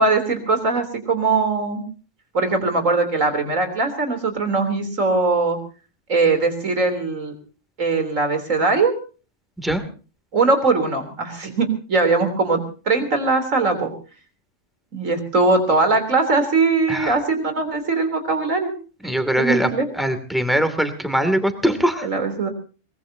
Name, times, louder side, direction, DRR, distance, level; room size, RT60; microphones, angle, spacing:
voice 1, 0.0-1.8 2.3-5.6 6.1-7.3 7.8-8.9 10.3-13.9 14.9-18.7 19.4-19.9 22.0-22.5, right 3 dB, 80° right, 7 dB, 3.9 m, -20 dB
voice 2, 19.0-22.1, equal, ahead, 8 dB, 2.5 m, -22 dB
23.5 x 20.5 x 2.8 m, 0.37 s
omnidirectional pair, 1.3 m